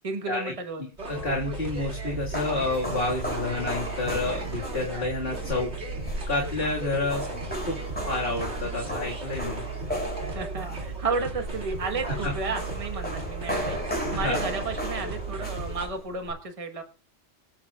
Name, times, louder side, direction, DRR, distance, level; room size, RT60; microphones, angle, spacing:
voice 1, 0.0-0.8 10.3-13.8 14.1-16.8, right 4 dB, 30° right, 5 dB, 1.3 m, -32 dB
sound 1, 1.0-15.9, right 3 dB, 55° right, 2.7 m, -36 dB
voice 2, 1.1-5.7 6.3-7.2 7.7-7.8 8.1-9.6 12.2-12.3 14.2-14.4, left 2 dB, 50° left, -3 dB, 2.2 m, -29 dB
sound 2, 1.4-16.3, equal, 5° left, 5.5 m, -35 dB
24.5 x 8.1 x 2.4 m, 0.37 s
omnidirectional pair, 1.3 m